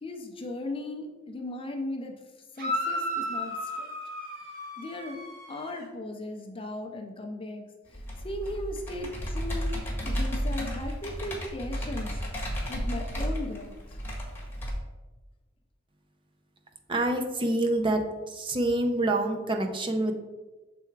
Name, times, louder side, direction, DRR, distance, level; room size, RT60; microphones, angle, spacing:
voice 1, 0.0-2.2 2.5-4.0 4.8-5.2 5.5-9.8 10.0-12.2 12.7-14.0, left 1 dB, 30° left, 3 dB, 0.5 m, -37 dB
sound 1, 2.6-5.8, equal, 50° right, 1.6 m, -34 dB
Computer keyboard, 7.9-14.7, equal, 10° left, 1.5 m, -33 dB
voice 2, 16.9-18.0 18.3-20.1, right 2 dB, 25° right, 4 dB, 0.6 m, -26 dB
6.8 x 3.5 x 4.5 m, 1.2 s
head